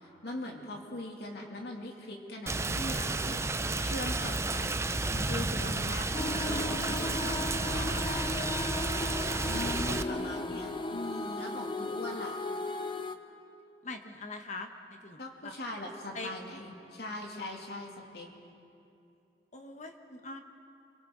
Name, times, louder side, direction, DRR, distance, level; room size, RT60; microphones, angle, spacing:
voice 1, 0.0-8.5 9.5-12.4 15.2-18.3, left 1 dB, 65° left, 0 dB, 2.8 m, -41 dB
Rain, 2.5-10.0, right 2 dB, 15° right, 0.6 m, -32 dB
sound 1, 6.1-13.2, left 2 dB, 30° left, 0.7 m, -36 dB
voice 2, 9.4-10.6 13.8-14.7 15.0-15.5 16.1-16.3 19.5-20.4, left 2 dB, 45° left, 5 dB, 1.2 m, -41 dB
29.5 x 23.5 x 4.0 m, 2.7 s
head